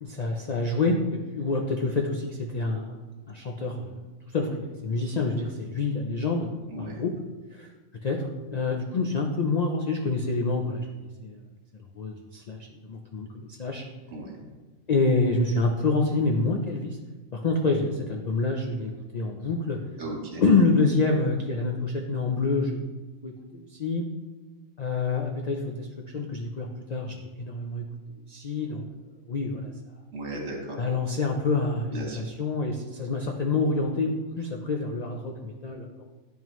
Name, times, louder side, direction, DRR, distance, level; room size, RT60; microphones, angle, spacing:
voice 1, 0.0-3.0 3.3-4.0 4.3-6.5 6.8-7.1 7.5-7.7 8.0-10.9 11.2-11.4 11.9-13.8 14.9-17.0 17.3-19.9 20.4-22.9 23.2-24.0 24.8-27.9 28.3-28.8 29.3-29.7 30.8-36.0, left 3 dB, 80° left, 1 dB, 0.3 m, -27 dB
voice 2, 6.7-7.0 14.1-14.5 20.0-20.4 30.1-30.8 31.9-32.2, right 1 dB, 60° right, 0 dB, 1.5 m, -36 dB
10.5 x 3.7 x 3.0 m, 1.3 s
omnidirectional pair, 1.4 m